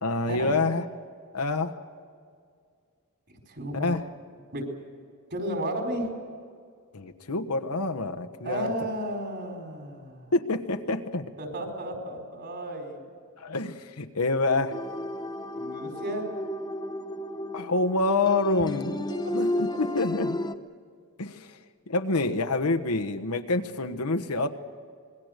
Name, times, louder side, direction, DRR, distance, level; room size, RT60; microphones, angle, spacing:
voice 1, 0.0-0.8 1.3-1.8 3.7-4.0 6.9-8.7 10.3-11.3 13.4-14.8 17.5-19.0 19.3-20.4 21.2-21.6 21.9-24.5, left 3 dB, 90° left, 6 dB, 1.3 m, -27 dB
voice 2, 3.5-3.9 4.5-4.7 5.3-6.1 8.4-10.3 11.4-13.0 15.5-16.3 19.1-19.2, right 1 dB, 50° right, 2 dB, 4.8 m, -33 dB
sound 1, 14.7-20.5, left 1 dB, 20° left, 0.8 m, -32 dB
26.5 x 21.0 x 6.7 m, 2.1 s
head